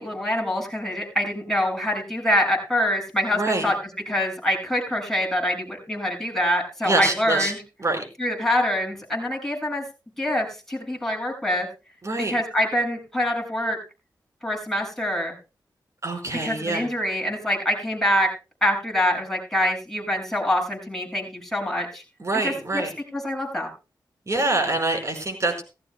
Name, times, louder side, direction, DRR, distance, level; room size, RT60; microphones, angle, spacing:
voice 1, 0.0-3.7 4.1-7.6 8.2-9.8 10.2-11.7 12.3-13.8 14.4-15.3 16.3-18.3 18.6-22.0 22.4-22.8 23.1-23.7, equal, 5° left, 0 dB, 6.7 m, -25 dB
voice 2, 3.3-3.7 6.8-7.5 7.8-8.0 12.0-12.3 16.0-16.8 22.2-22.9 24.3-25.6, right 2 dB, 35° right, 4 dB, 5.1 m, -25 dB
17.0 x 14.5 x 2.3 m, 0.30 s
cardioid pair, 50°, 8 cm